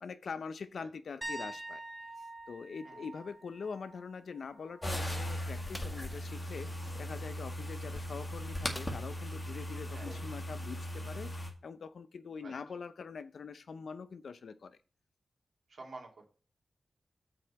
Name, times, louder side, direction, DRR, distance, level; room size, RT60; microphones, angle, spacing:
voice 1, 0.0-1.8 2.2-14.8, left 5 dB, 80° left, 12 dB, 0.6 m, -44 dB
sound 1, 1.2-5.0 5.3-5.6 8.5-8.6, right 2 dB, 30° right, 1.6 m, -46 dB
sound 2, 4.8-11.5, equal, 25° left, 1.8 m, -38 dB
sound 3, 5.7-6.1 8.7-9.3 9.7-9.8 10.2-10.4, left 1 dB, 10° left, 0.9 m, -49 dB
voice 2, 15.7-16.2, right 3 dB, 70° right, 1 dB, 2.6 m, -49 dB
7.7 x 4.3 x 6.1 m, 0.38 s
wide cardioid pair, 90°, 0 cm